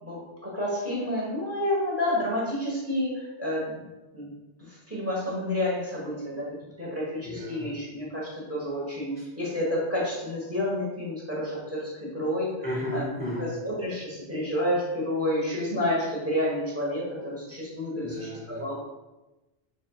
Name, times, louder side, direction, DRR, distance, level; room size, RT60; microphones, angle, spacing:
voice 1, 0.0-3.9 4.1-4.3 4.7-6.4 6.8-12.5 12.9-13.0 13.4-18.7, left 1 dB, 15° right, -5 dB, 1.1 m, -30 dB
voice 2, 7.2-7.7 12.6-13.5 18.0-18.6, left 1 dB, 10° left, -6 dB, 0.5 m, -33 dB
4.2 x 3.3 x 2.3 m, 1.1 s
omnidirectional pair, 1.2 m